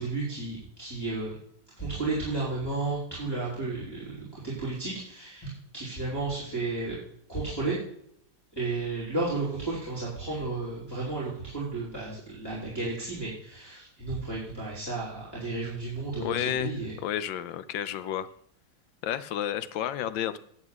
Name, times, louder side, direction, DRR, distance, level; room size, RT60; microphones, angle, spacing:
voice 1, 0.0-1.4 1.8-7.0 7.3-7.8 8.5-16.9, right 3 dB, 10° left, -7 dB, 4.0 m, -33 dB
voice 2, 16.2-16.7 17.0-18.3 19.0-20.4, left 11 dB, 80° left, 14 dB, 1.4 m, -31 dB
11.0 x 4.9 x 7.9 m, 0.68 s
omnidirectional pair, 2.1 m